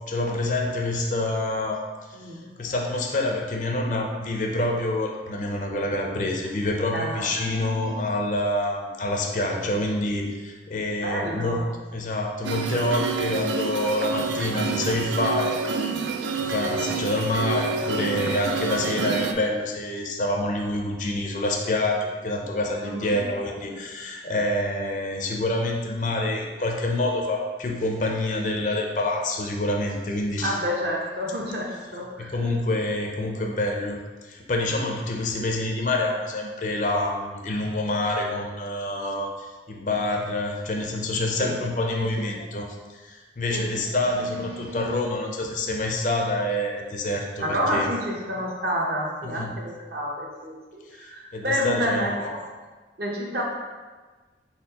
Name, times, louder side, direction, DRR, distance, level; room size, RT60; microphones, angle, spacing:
voice 1, 0.0-1.8 2.1-2.3 2.6-11.6 11.9-15.6 16.4-30.6 32.2-47.9 49.2-49.5 50.9-52.1, left 1 dB, 45° left, 1 dB, 0.5 m, -27 dB
voice 2, 2.1-2.5 6.9-8.1 11.0-11.6 22.8-23.2 30.4-32.4 41.4-41.5 42.0-42.4 43.5-43.8 44.3-45.0 47.4-52.3 53.0-53.5, equal, 60° right, -2 dB, 0.8 m, -29 dB
sound 1, 12.4-19.3, right 5 dB, 80° right, 0.3 m, -28 dB
4.2 x 4.2 x 2.8 m, 1.3 s
head